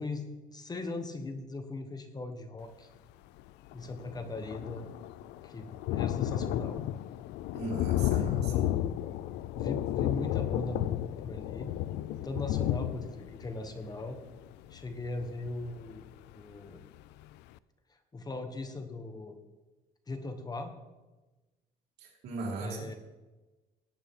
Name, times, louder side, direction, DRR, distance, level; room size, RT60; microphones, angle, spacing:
voice 1, 0.0-2.9 3.7-4.9 5.4-6.8 8.1-9.1 9.5-11.7 12.2-14.2 14.7-16.0 16.3-16.8 17.9-19.4 20.1-20.7 22.6-22.9, left 2 dB, 25° left, 7 dB, 1.3 m, -39 dB
Thunder, 3.4-3.5 3.7-16.3 16.8-16.9 17.2-17.3, left 13 dB, 85° left, 0.4 m, -33 dB
voice 2, 7.5-8.5 22.0-23.0, right 3 dB, 75° right, -2 dB, 3.4 m, -38 dB
17.5 x 8.8 x 3.7 m, 1.2 s
cardioid pair, 110°, 17 cm